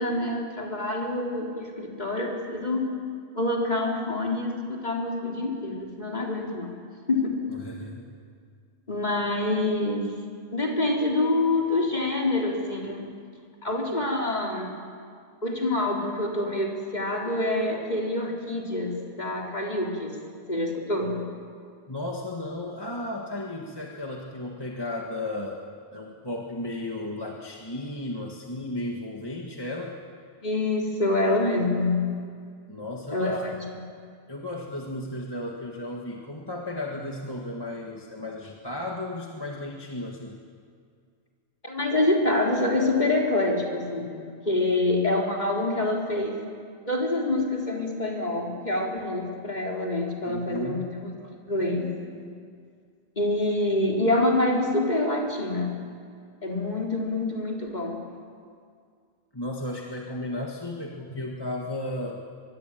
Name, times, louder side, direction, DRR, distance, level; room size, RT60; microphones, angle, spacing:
voice 1, 0.0-2.9 3.3-6.8 7.1-7.4 8.9-10.1 10.5-13.2 13.6-14.8 15.4-20.2 20.5-21.3 30.4-32.2 33.1-33.5 33.7-33.9 41.6-46.4 46.9-51.1 51.5-52.3 53.2-55.8 56.4-58.0 61.1-61.2, left 2 dB, 45° left, -1 dB, 4.0 m, -26 dB
voice 2, 7.5-8.1 21.9-25.6 25.9-30.0 32.7-33.4 34.3-40.4 50.3-50.9 59.3-62.2, left 1 dB, 20° left, 0 dB, 1.8 m, -34 dB
24.0 x 22.5 x 9.1 m, 2.2 s
omnidirectional pair, 1.1 m